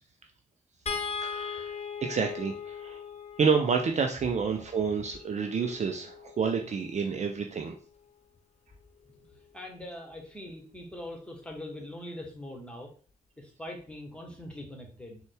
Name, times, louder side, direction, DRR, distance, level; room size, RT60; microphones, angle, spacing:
sound 1, 0.9-7.2 8.7-8.9 9.2-9.4, left 6 dB, 40° left, 0.7 m, -40 dB
voice 1, 1.2-3.0 3.4-7.7, right 5 dB, 40° right, 4 dB, 0.5 m, -29 dB
voice 2, 9.5-12.9 13.4-15.2, left 1 dB, 5° left, 1 dB, 1.3 m, -42 dB
3.9 x 2.3 x 3.5 m, 0.41 s
hypercardioid pair, 40°, 18 cm